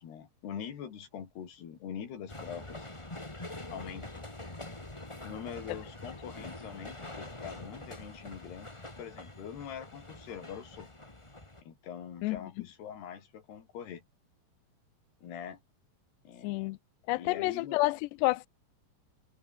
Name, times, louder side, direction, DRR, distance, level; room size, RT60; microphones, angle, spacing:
voice 1, 0.0-2.9 3.7-4.2 5.2-8.7 9.0-10.9 11.6-14.0 15.2-15.6 16.3-16.7 17.1-17.8, left 8 dB, 65° left, 5.2 m, -43 dB
sound 1, 2.3-11.6, left 2 dB, 40° left, 0.4 m, -45 dB
voice 2, 16.4-16.8 17.1-18.5, left 21 dB, 80° left, 2.6 m, -29 dB
omnidirectional pair, 5.2 m